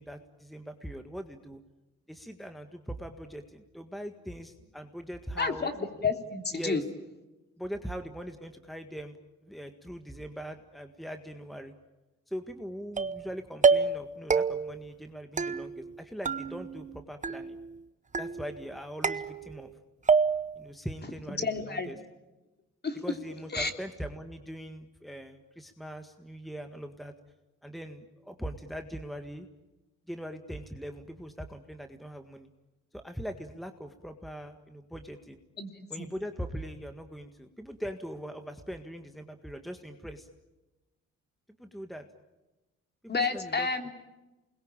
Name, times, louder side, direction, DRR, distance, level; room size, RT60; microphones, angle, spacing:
voice 1, 0.0-1.6 2.1-5.7 6.5-6.8 7.6-9.2 9.4-11.7 12.3-17.6 18.2-19.7 20.6-22.0 23.0-27.1 27.6-29.5 30.1-32.5 32.9-35.4 35.9-40.3 41.6-42.0 43.1-43.7, equal, ahead, 7 dB, 1.8 m, -41 dB
voice 2, 5.4-5.7 6.0-6.8 21.4-21.9 22.8-23.0 23.5-23.7 35.6-36.0 43.1-43.9, left 4 dB, 35° left, 6 dB, 3.3 m, -30 dB
sound 1, 13.0-13.3 13.6-14.0 14.3-14.8 15.4-16.0 16.3-16.9 17.2-17.8 18.1-18.7 19.0-19.7 20.1-20.6, right 5 dB, 25° right, 1.0 m, -27 dB
28.5 x 21.5 x 8.9 m, 1.1 s
cardioid pair, 90°, 30 cm